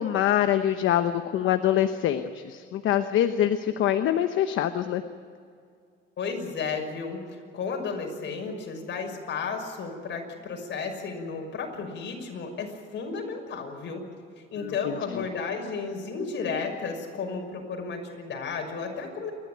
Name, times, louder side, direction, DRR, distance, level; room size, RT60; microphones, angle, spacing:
voice 1, 0.0-5.0 14.6-15.3, left 11 dB, 85° left, 9 dB, 1.0 m, -25 dB
voice 2, 6.2-14.0 14.5-19.3, left 5 dB, 65° left, 2 dB, 6.1 m, -33 dB
29.0 x 13.0 x 9.4 m, 2.2 s
cardioid pair, 90°, 20 cm